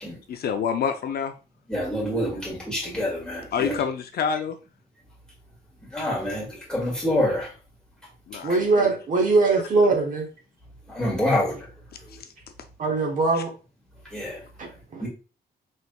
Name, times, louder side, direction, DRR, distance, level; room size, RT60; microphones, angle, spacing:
voice 1, 0.3-1.3 3.5-4.6 8.3-9.0 12.2-12.3 13.3-13.4, left 7 dB, 65° left, 7 dB, 0.4 m, -27 dB
voice 2, 1.7-3.8 5.9-7.5 10.9-11.6 14.1-14.4 15.0-15.1, left 1 dB, 5° left, -4 dB, 1.7 m, -26 dB
voice 3, 8.4-10.3 12.8-13.5 14.6-15.0, right 3 dB, 50° right, 2 dB, 1.0 m, -22 dB
4.3 x 3.4 x 2.3 m, 0.34 s
wide cardioid pair, 140°, 18 cm